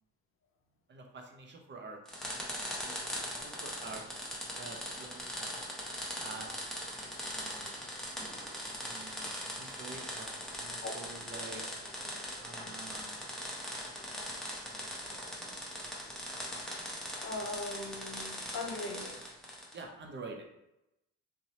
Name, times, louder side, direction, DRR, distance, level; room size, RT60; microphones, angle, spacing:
voice 1, 0.9-2.5 2.8-4.0 4.5-5.6 6.2-7.8 8.7-11.6 12.4-13.3 14.7-14.8 15.1-15.6 19.7-20.5, right 3 dB, 40° right, 2 dB, 0.5 m, -48 dB
sound 1, 2.1-19.8, equal, ahead, 0.7 m, -40 dB
voice 2, 11.3-11.7 12.7-12.8 17.2-19.4, left 2 dB, 45° left, 2 dB, 0.5 m, -40 dB
2.7 x 2.0 x 2.7 m, 0.88 s
cardioid pair, 90°, 30 cm